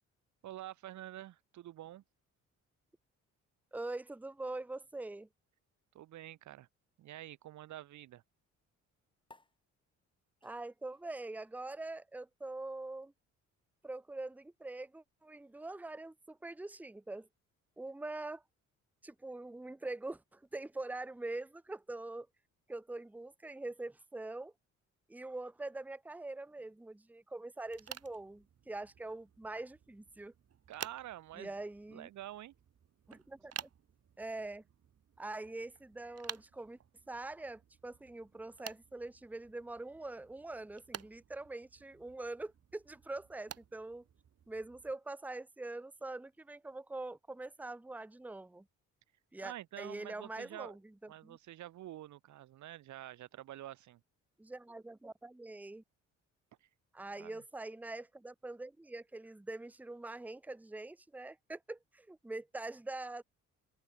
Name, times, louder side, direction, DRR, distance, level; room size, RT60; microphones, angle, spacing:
voice 1, 0.4-2.0 5.9-6.7 7.0-8.2 30.7-31.5 31.9-32.5 49.4-50.8 51.1-54.0 56.6-56.7 57.2-57.4, right 13 dB, 70° right, 1.2 m, -48 dB
voice 2, 3.7-5.3 10.4-13.1 13.8-17.3 17.8-18.4 19.0-22.3 22.7-24.5 25.1-30.3 31.4-32.1 33.1-33.7 34.2-34.6 35.2-36.8 37.1-44.0 44.5-48.6 49.3-50.8 51.2-51.4 54.4-55.8 56.9-63.2, right 2 dB, 5° right, 0.9 m, -44 dB
sound 1, 9.2-16.1, left 2 dB, 15° left, 6.2 m, -69 dB
sound 2, 27.6-44.9, right 8 dB, 55° right, 4.7 m, -52 dB
open air
cardioid pair, 90°, 30 cm